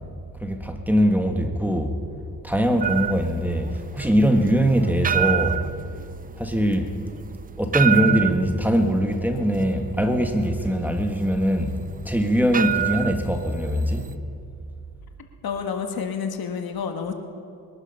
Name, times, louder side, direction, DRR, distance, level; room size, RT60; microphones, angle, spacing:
voice 1, 0.4-2.0 2.4-5.6 6.4-6.9 7.6-11.8 12.1-14.1, equal, 5° right, 4 dB, 1.7 m, -22 dB
sound 1, 2.8-14.1, right 9 dB, 25° right, 0.4 m, -28 dB
voice 2, 15.4-17.1, left 6 dB, 65° left, 5 dB, 1.6 m, -29 dB
22.0 x 11.5 x 5.6 m, 2.5 s
cardioid pair, 70°, 38 cm